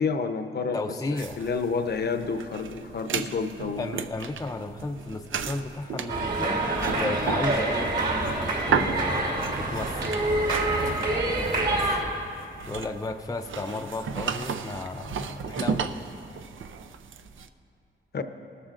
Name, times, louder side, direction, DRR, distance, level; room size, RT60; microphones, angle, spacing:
voice 1, 0.0-0.8 1.1-3.9 18.1-18.2, left 5 dB, 55° left, 8 dB, 0.7 m, -29 dB
voice 2, 0.7-1.4 3.8-6.6 7.0-7.9 8.7-10.2 11.6-12.0 12.7-16.0, left 2 dB, 20° left, 5 dB, 0.5 m, -34 dB
sound 1, 1.2-17.5, right 6 dB, 80° right, 0.5 m, -35 dB
sound 2, 6.1-12.0, right 2 dB, 55° right, 3.0 m, -26 dB
18.5 x 13.5 x 2.5 m, 2.6 s
wide cardioid pair, 90°, 20 cm